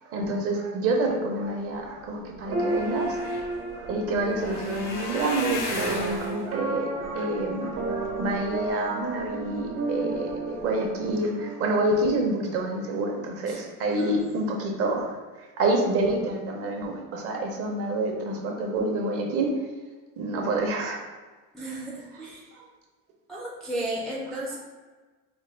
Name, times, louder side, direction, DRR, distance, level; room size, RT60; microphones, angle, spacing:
voice 1, 0.0-3.2 3.7-15.1 15.4-19.5 20.2-21.0 22.1-22.2 22.5-22.7, right 2 dB, 40° right, 1 dB, 0.7 m, -28 dB
sound 1, 2.0-2.1 2.3-8.7 9.2-9.7 10.1-10.3 10.6-10.7, left 2 dB, 85° left, 1.0 m, -37 dB
sound 2, 2.5-13.5, right 2 dB, 60° right, 1.0 m, -33 dB
voice 2, 21.5-22.5 23.3-24.6, right 1 dB, ahead, -6 dB, 0.3 m, -34 dB
4.2 x 2.2 x 3.2 m, 1.3 s
cardioid pair, 135°, 35 cm